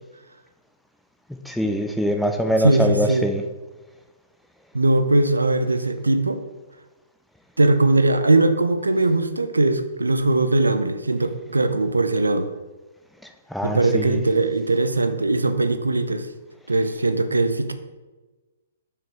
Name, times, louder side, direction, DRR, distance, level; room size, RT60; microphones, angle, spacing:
voice 1, 1.5-3.4 13.5-14.2, equal, ahead, 5 dB, 0.5 m, -23 dB
voice 2, 2.6-3.2 4.7-6.4 7.6-12.5 13.6-16.3 16.7-17.7, right 2 dB, 80° right, 9 dB, 0.5 m, -20 dB
6.0 x 4.9 x 4.6 m, 1.2 s
figure-of-eight pair, 120°, 0 cm